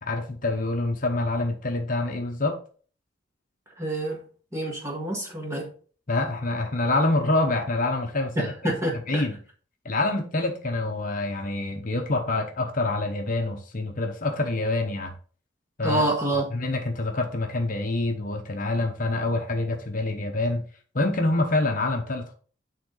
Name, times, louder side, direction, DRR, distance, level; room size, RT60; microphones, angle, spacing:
voice 1, 0.0-2.6 6.1-8.5 8.9-9.4 9.8-15.1 15.8-16.0 16.5-20.6 20.9-22.3, left 2 dB, 40° left, 3 dB, 0.9 m, -26 dB
voice 2, 3.8-4.2 4.5-5.7 8.3-9.2 15.8-16.5, right 1 dB, 15° right, -1 dB, 1.7 m, -27 dB
9.3 x 3.7 x 3.9 m, 0.42 s
head